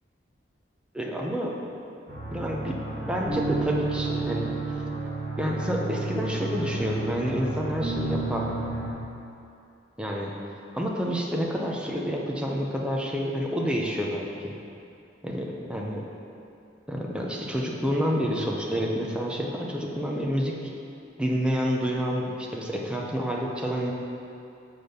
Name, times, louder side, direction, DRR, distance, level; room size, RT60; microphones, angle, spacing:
voice 1, 0.9-1.6 2.3-4.5 5.4-8.5 10.0-10.3 10.7-14.6 15.2-16.1 16.9-20.5 21.2-23.9, equal, 5° right, -2 dB, 0.7 m, -28 dB
sound 1, 2.1-8.9, right 3 dB, 45° right, 1.9 m, -31 dB
6.1 x 5.2 x 6.8 m, 2.7 s
head